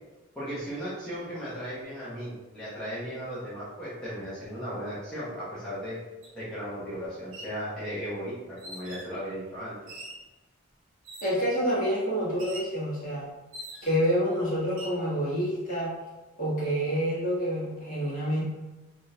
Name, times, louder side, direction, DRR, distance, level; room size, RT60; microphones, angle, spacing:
voice 1, 0.3-6.0 6.3-10.0, equal, 5° left, -12 dB, 0.7 m, -36 dB
sound 1, 6.2-6.3 7.2-7.6 8.6-9.1 9.9-10.3 11.0-11.5 12.4-12.8 13.5-14.1 14.6-15.0, right 1 dB, 65° right, 0.8 m, -43 dB
voice 2, 11.2-13.3 13.8-15.9 16.4-18.4, equal, 35° left, -8 dB, 1.3 m, -27 dB
3.5 x 2.4 x 2.7 m, 1.1 s
head